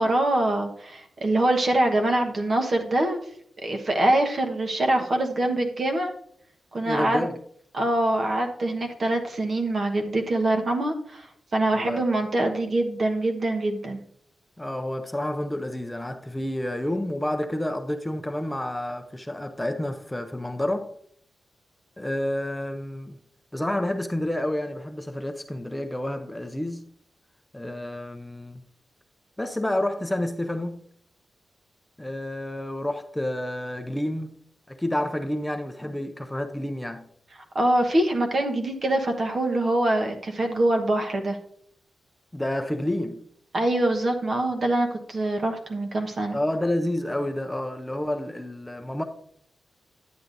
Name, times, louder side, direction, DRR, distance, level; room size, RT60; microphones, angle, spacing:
voice 1, 0.0-3.2 3.6-6.1 6.7-7.3 7.7-11.3 11.5-14.0 37.5-41.4 43.5-46.4, right 1 dB, 50° right, 1.2 m, -24 dB
voice 2, 6.8-7.4 11.7-12.0 14.6-20.9 22.0-23.2 23.5-26.8 27.5-28.6 29.4-30.8 32.0-34.3 34.7-37.1 42.3-43.2 46.3-49.0, left 1 dB, 10° left, 0.6 m, -29 dB
10.0 x 8.1 x 2.6 m
cardioid pair, 65°, 0 cm